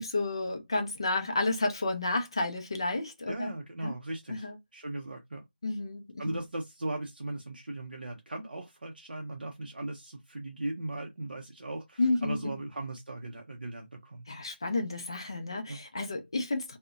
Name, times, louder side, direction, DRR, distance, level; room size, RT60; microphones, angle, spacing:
voice 1, 0.0-3.5 3.8-3.9 4.3-4.6 5.6-6.4 12.0-12.5 14.3-16.8, left 2 dB, 25° left, 0.4 m, -31 dB
voice 2, 3.3-4.5 4.7-5.4 6.2-14.2 15.7-15.8, right 2 dB, 60° right, 0.5 m, -38 dB
2.5 x 2.0 x 2.3 m
figure-of-eight pair, 170°, 6 cm